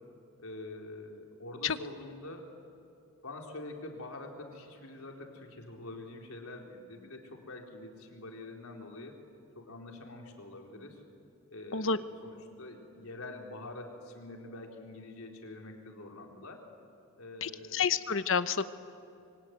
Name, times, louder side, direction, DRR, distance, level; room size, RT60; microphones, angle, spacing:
voice 1, 0.4-2.5 3.2-9.2 9.6-11.0 11.5-16.6 17.2-17.9, left 2 dB, 85° left, 1 dB, 4.1 m, -45 dB
voice 2, 17.4-18.7, left 6 dB, 65° left, 12 dB, 1.0 m, -29 dB
25.5 x 24.5 x 9.4 m, 2.7 s
head